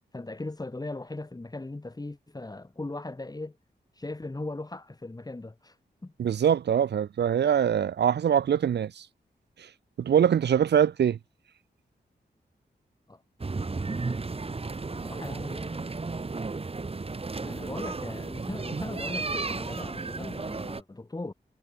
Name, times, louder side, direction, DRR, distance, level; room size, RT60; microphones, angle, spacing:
voice 1, 0.1-3.6 3.9-5.8 6.0-6.1 13.1-13.2 14.9-15.8 17.4-21.3, left 2 dB, 20° left, 4.6 m, -38 dB
voice 2, 6.2-9.1 10.0-11.2, right 9 dB, 85° right, 0.6 m, -23 dB
sound 1, 13.4-20.8, right 3 dB, 35° right, 3.0 m, -34 dB
wide cardioid pair, 125°, 17 cm